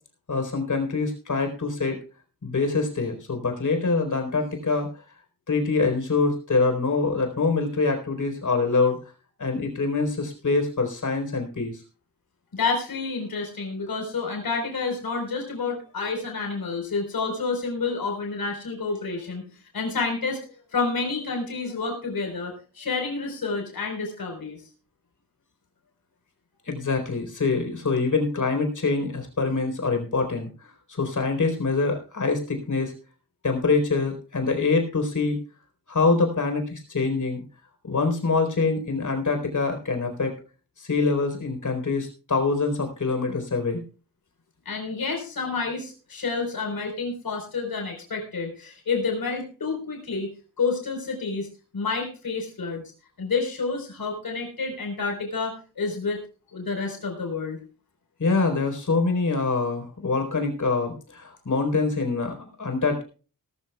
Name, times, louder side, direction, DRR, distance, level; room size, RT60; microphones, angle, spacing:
voice 1, 0.3-2.0 2.4-4.9 5.5-9.0 9.4-11.8 26.7-30.5 30.9-32.9 33.4-35.4 35.9-37.4 37.8-40.3 40.8-43.8 58.2-63.0, left 4 dB, 60° left, 5 dB, 4.2 m, -25 dB
voice 2, 12.5-19.5 19.7-20.4 20.7-24.6 44.6-50.3 50.6-51.5 51.7-52.8 53.2-56.2 56.5-57.6, left 4 dB, 80° left, 2 dB, 4.4 m, -29 dB
18.5 x 14.0 x 2.3 m, 0.36 s
wide cardioid pair, 140°, 35 cm